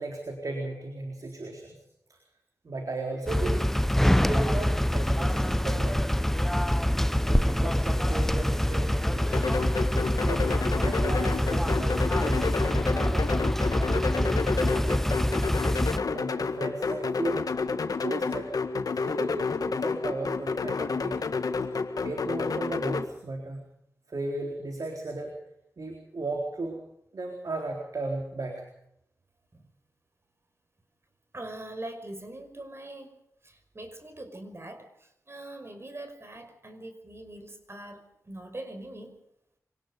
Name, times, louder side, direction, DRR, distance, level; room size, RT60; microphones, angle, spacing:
voice 1, 0.0-1.8 2.1-2.2 2.6-3.7 4.2-6.3 7.3-9.5 10.2-13.3 13.9-15.3 16.1-17.4 18.0-18.5 18.9-21.3 22.0-23.7 24.1-25.3 25.8-26.8 27.1-28.7, right 2 dB, 75° right, 2 dB, 4.0 m, -36 dB
sound 1, 3.3-16.0, equal, 5° left, 0.9 m, -25 dB
sound 2, 9.3-23.0, left 4 dB, 90° left, 1.6 m, -30 dB
voice 2, 31.3-33.2 33.4-39.1, right 1 dB, 45° right, 7 dB, 5.6 m, -42 dB
25.5 x 19.0 x 5.3 m, 0.76 s
cardioid pair, 45°, 6 cm